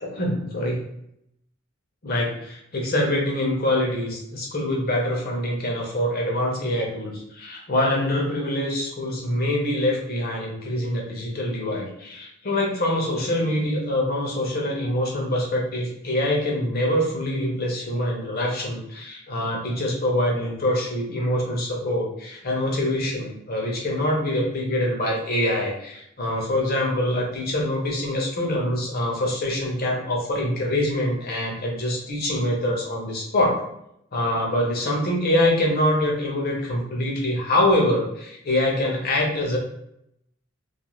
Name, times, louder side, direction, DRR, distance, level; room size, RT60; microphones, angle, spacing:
voice 1, 0.0-0.8 2.0-33.6 34.1-39.6, left 1 dB, 50° left, -1 dB, 0.7 m, -24 dB
2.4 x 2.3 x 2.9 m, 0.76 s
head